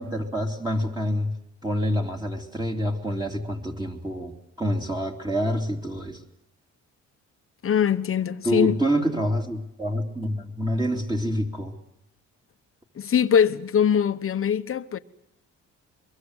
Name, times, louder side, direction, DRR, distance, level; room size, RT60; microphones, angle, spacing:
voice 1, 0.0-1.3 1.6-6.2 8.4-11.8, equal, 15° right, 3.0 m, -27 dB
voice 2, 7.6-8.8 13.0-15.0, left 8 dB, 45° left, 1.2 m, -22 dB
23.0 x 22.5 x 8.1 m
cardioid pair, 90°, 30 cm